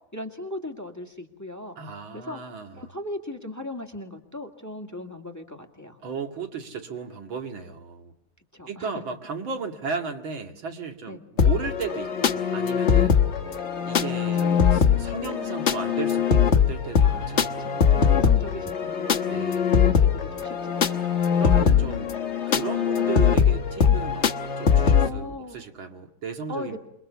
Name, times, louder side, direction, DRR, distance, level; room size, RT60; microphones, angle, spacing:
voice 1, 0.1-1.8 2.1-2.4 2.7-6.0 8.5-9.0 11.1-11.2 14.4-15.2 17.0-17.3 17.6-19.4 19.9-21.0 23.9-24.1 25.0-25.6 26.5-26.8, left 1 dB, 10° left, 4 dB, 2.1 m, -38 dB
voice 2, 1.8-2.8 6.0-8.1 8.7-13.2 13.9-17.7 18.6-18.7 19.3-19.7 21.3-22.1 22.5-24.3 24.6-26.8, right 6 dB, 70° right, 5 dB, 2.9 m, -35 dB
sound 1, 11.4-25.1, left 7 dB, 40° left, 1.2 m, -21 dB
28.0 x 22.0 x 7.1 m, 0.79 s
omnidirectional pair, 2.3 m